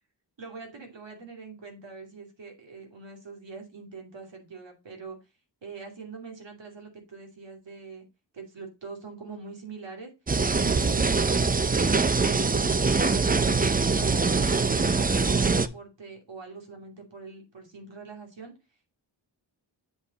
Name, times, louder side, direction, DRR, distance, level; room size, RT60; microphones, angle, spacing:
voice 1, 0.4-5.2 5.6-8.1 8.3-10.1 10.6-13.6 14.0-18.5, right 4 dB, 75° right, 3 dB, 2.7 m, -43 dB
sound 1, 10.3-15.7, right 4 dB, 20° right, 0.5 m, -23 dB
7.8 x 4.8 x 4.0 m, 0.27 s
wide cardioid pair, 100°, 44 cm